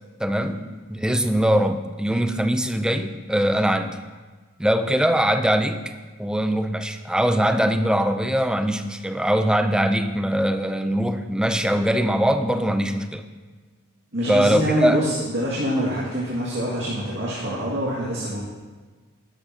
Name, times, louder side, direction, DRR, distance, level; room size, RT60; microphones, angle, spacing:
voice 1, 0.2-0.6 0.9-4.0 4.6-5.8 6.2-13.2 14.3-15.0, equal, 5° right, 8 dB, 0.4 m, -22 dB
voice 2, 14.1-18.4, equal, 60° right, -6 dB, 2.0 m, -25 dB
12.0 x 12.0 x 2.8 m, 1.4 s
head